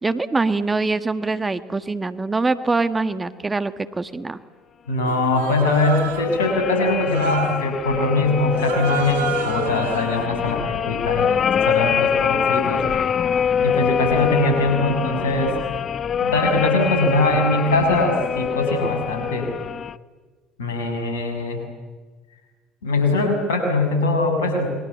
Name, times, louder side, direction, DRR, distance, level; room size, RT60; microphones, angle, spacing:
voice 1, 0.0-4.4, right 3 dB, 20° right, 12 dB, 1.6 m, -23 dB
voice 2, 4.9-13.1 13.6-15.6 16.2-19.5 20.6-21.6 22.8-24.7, left 2 dB, 80° left, 5 dB, 6.8 m, -22 dB
Human voice, 5.1-6.4 7.0-7.7 8.5-10.3, right 9 dB, 75° right, 1.8 m, -30 dB
sound 1, 5.6-20.0, left 7 dB, 45° left, 1.0 m, -24 dB
29.0 x 23.0 x 8.6 m, 1.4 s
hypercardioid pair, 65°, 0 cm